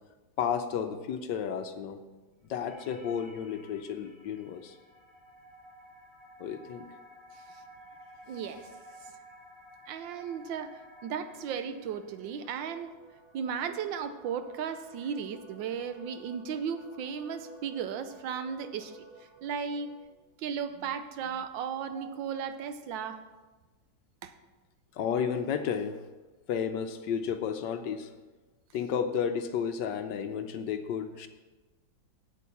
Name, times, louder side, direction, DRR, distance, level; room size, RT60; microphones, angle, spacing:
voice 1, 0.4-2.0 2.5-4.8 6.4-6.9 24.9-26.0 26.5-28.1 28.7-31.3, left 7 dB, 70° left, 8 dB, 1.2 m, -32 dB
sound 1, 2.7-20.0, right 1 dB, 25° left, 0.6 m, -54 dB
voice 2, 8.3-8.7 9.9-12.9 13.3-19.0 19.4-19.9 20.4-23.2 24.2-24.3, right 7 dB, 75° right, 10 dB, 1.4 m, -35 dB
8.3 x 8.2 x 5.6 m, 1.2 s
omnidirectional pair, 2.1 m